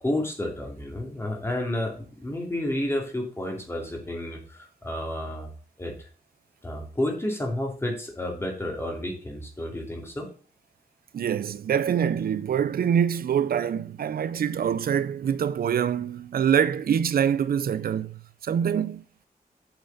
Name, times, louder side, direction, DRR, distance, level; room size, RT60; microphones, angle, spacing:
voice 1, 0.0-5.5 5.8-6.1 6.6-10.3, left 1 dB, 15° left, 2.6 m, -31 dB
voice 2, 11.1-19.0, right 8 dB, 85° right, 0.5 m, -25 dB
8.2 x 6.6 x 4.0 m
wide cardioid pair, 155°, 15 cm